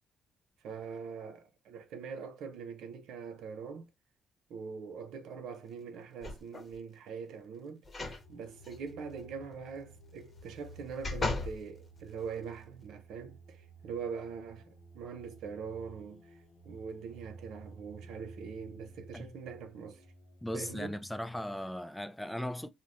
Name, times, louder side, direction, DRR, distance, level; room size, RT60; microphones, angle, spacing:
voice 1, 0.6-3.9 4.5-7.8 8.3-16.4 16.6-20.1 20.5-21.0, right 6 dB, 80° right, 0.6 m, -43 dB
sound 1, 6.2-6.8 7.9-8.2 8.6-8.8 10.4-11.6 12.2-12.3, left 2 dB, 30° left, 0.9 m, -36 dB
sound 2, 8.0-21.4, right 2 dB, 70° left, 0.6 m, -54 dB
voice 2, 20.4-22.7, left 1 dB, 5° left, 0.4 m, -38 dB
2.6 x 2.2 x 3.3 m
cardioid pair, 90°, 0 cm